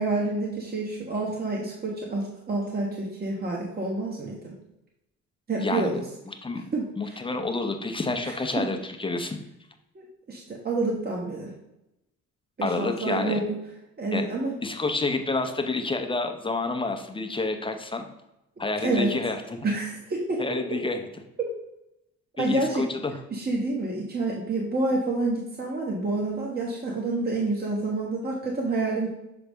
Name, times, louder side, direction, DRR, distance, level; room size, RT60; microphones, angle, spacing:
voice 1, 0.0-4.5 5.5-6.0 6.7-7.2 8.2-8.6 9.9-11.5 12.6-13.4 14.0-14.5 18.8-19.1 19.6-20.4 20.7-20.8 22.4-22.8 23.3-29.1, right 2 dB, 30° right, -2 dB, 1.2 m, -28 dB
voice 2, 5.6-6.0 6.3-6.7 7.0-9.4 12.6-13.4 14.1-14.3 14.6-18.1 18.6-19.6 20.4-21.0 22.4-23.1, left 3 dB, 15° left, 4 dB, 0.7 m, -29 dB
6.9 x 3.9 x 3.6 m, 0.89 s
cardioid pair, 90°, 30 cm